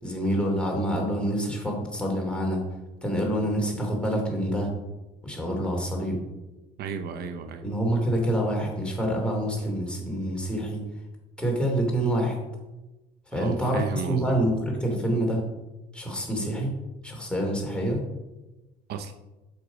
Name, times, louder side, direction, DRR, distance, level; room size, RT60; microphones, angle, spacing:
voice 1, 0.0-2.6 3.0-4.7 5.2-6.2 7.6-10.8 11.4-12.4 13.3-15.4 15.9-16.7 17.0-18.0, right 1 dB, 5° left, -1 dB, 2.7 m, -27 dB
voice 2, 6.8-7.8 13.3-14.4 18.9-19.1, right 6 dB, 70° right, 9 dB, 0.7 m, -33 dB
8.0 x 6.0 x 5.2 m, 1.1 s
cardioid pair, 110°, 17 cm